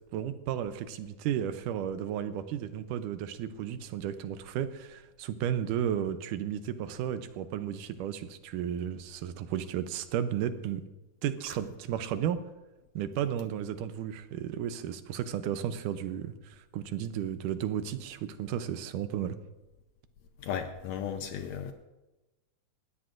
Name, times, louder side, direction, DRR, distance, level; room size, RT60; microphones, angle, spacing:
voice 1, 0.1-10.8 11.2-12.4 13.0-19.4, right 10 dB, 80° right, 11 dB, 2.3 m, -33 dB
voice 2, 20.4-21.7, left 8 dB, 70° left, 6 dB, 1.8 m, -35 dB
19.5 x 14.0 x 2.5 m, 1.1 s
omnidirectional pair, 3.7 m